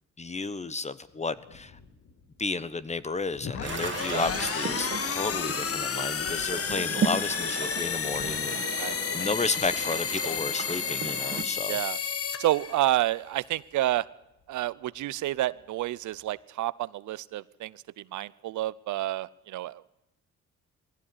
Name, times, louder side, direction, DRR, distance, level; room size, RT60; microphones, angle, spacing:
voice 1, 0.2-1.7 2.4-11.8, left 3 dB, 20° left, 15 dB, 1.2 m, -32 dB
Thunder, 1.0-16.3, left 4 dB, 85° left, 3.2 m, -52 dB
sound 1, 3.4-13.1, left 7 dB, 50° left, 1.3 m, -32 dB
sound 2, 3.6-11.4, right 5 dB, 40° right, 2.2 m, -35 dB
voice 2, 8.8-9.3 11.7-12.0 12.4-14.1 14.5-19.9, right 15 dB, 75° right, 19 dB, 0.7 m, -29 dB
20.0 x 16.0 x 9.8 m, 0.90 s
cardioid pair, 90°, 30 cm